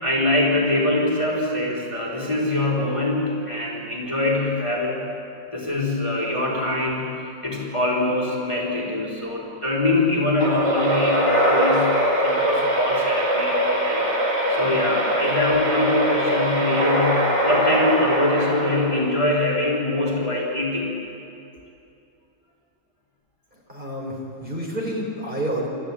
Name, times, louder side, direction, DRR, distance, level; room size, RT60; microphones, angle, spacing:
voice 1, 0.0-5.0 5.5-11.9 12.2-20.9, left 2 dB, 15° left, -5 dB, 3.9 m, -23 dB
sound 1, 10.4-19.2, right 1 dB, 70° right, 8.2 m, -22 dB
voice 2, 23.7-25.7, right 1 dB, 25° right, -2 dB, 4.0 m, -29 dB
29.0 x 13.5 x 8.8 m, 2.7 s
omnidirectional pair, 1.9 m